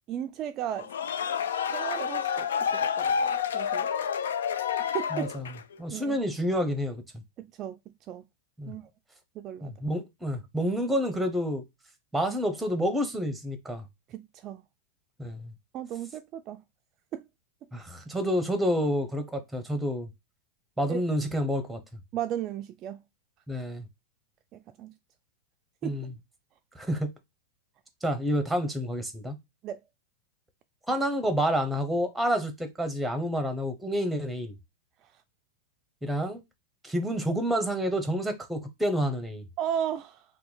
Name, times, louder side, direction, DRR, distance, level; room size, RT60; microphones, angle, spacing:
voice 1, 0.1-0.9 1.7-3.9 4.9-5.3 5.9-6.2 7.4-7.8 8.1-8.2 8.7-8.9 9.4-9.7 14.1-14.6 15.7-16.6 17.1-17.2 20.9-21.0 22.1-23.0 24.5-24.9 25.8-26.1 29.6-29.8 39.6-40.2, right 10 dB, 40° right, 0.3 m, -35 dB
sound 1, 0.7-5.7, left 7 dB, 85° left, 0.3 m, -29 dB
voice 2, 5.1-5.5 5.8-7.0 8.6-8.7 9.6-11.6 12.1-13.8 15.2-15.5 17.7-20.1 20.8-21.8 23.5-23.8 25.8-26.1 26.7-27.1 28.0-29.4 30.9-34.5 36.0-36.4 36.8-39.4, equal, 5° right, 0.8 m, -29 dB
2.9 x 2.2 x 3.8 m
hypercardioid pair, 120°, 0 cm